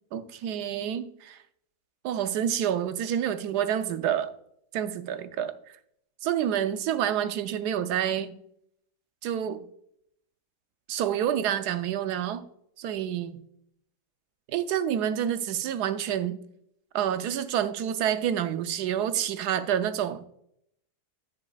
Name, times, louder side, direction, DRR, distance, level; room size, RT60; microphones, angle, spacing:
voice 1, 0.1-1.4 2.0-4.3 4.7-5.5 6.2-8.3 9.2-9.6 10.9-12.4 12.8-13.4 14.5-16.4 16.9-20.2, right 10 dB, 85° right, 11 dB, 1.2 m, -28 dB
9.8 x 8.2 x 2.3 m, 0.72 s
omnidirectional pair, 1.7 m